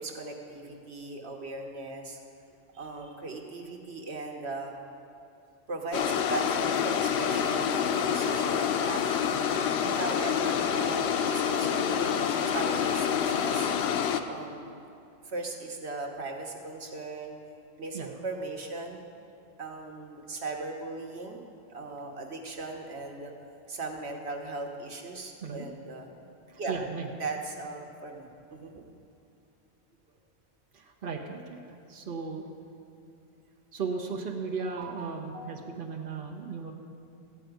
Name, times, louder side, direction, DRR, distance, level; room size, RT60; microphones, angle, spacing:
voice 1, 0.0-2.2 2.8-4.7 5.7-9.4 9.9-13.7 14.3-14.7 15.2-17.4 17.8-19.0 19.6-21.4 21.7-23.3 23.7-26.1 26.6-26.8 27.2-28.8, right 3 dB, 85° right, 2 dB, 1.4 m, -38 dB
sound 1, 5.9-14.2, left 8 dB, 85° left, 0.9 m, -27 dB
voice 2, 26.7-27.1 30.7-31.6 31.9-32.4 33.7-36.7, right 5 dB, 55° right, 1 dB, 1.1 m, -36 dB
14.5 x 4.9 x 9.3 m, 2.7 s
omnidirectional pair, 1.1 m